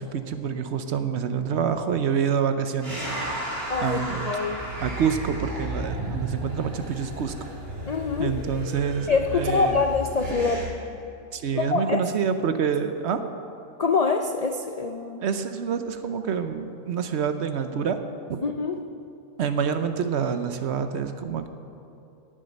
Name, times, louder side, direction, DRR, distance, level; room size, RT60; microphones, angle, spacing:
voice 1, 0.0-3.4 3.8-4.2 4.8-7.3 8.2-9.8 11.3-13.2 15.2-18.0 18.3-18.4 19.4-21.5, right 7 dB, 60° right, 9 dB, 0.9 m, -27 dB
sound 1, 2.8-10.6, equal, 45° right, 2.9 m, -33 dB
voice 2, 3.7-4.6 7.9-8.3 9.1-10.6 11.6-12.0 13.8-15.2 18.4-18.8, left 4 dB, 90° left, 5 dB, 0.3 m, -25 dB
18.0 x 7.5 x 5.3 m, 2.7 s
omnidirectional pair, 1.4 m